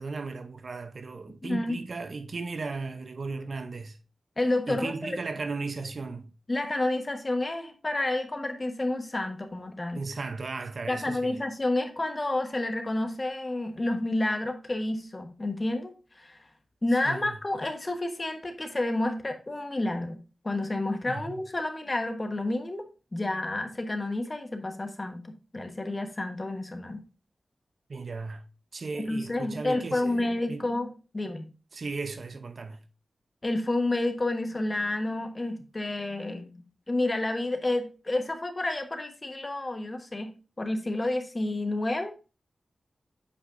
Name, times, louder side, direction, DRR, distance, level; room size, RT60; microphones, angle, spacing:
voice 1, 0.0-4.0 4.7-6.3 9.9-11.4 17.0-17.4 21.1-21.3 27.9-28.4 28.7-30.7 31.7-32.8, right 4 dB, 65° right, 0.8 m, -36 dB
voice 2, 1.4-1.8 4.4-5.2 6.5-10.0 10.9-16.4 16.8-27.0 28.9-31.5 33.4-36.5 36.9-42.1, left 2 dB, 35° left, 1.3 m, -30 dB
8.5 x 5.0 x 2.6 m
wide cardioid pair, 65°, 0 cm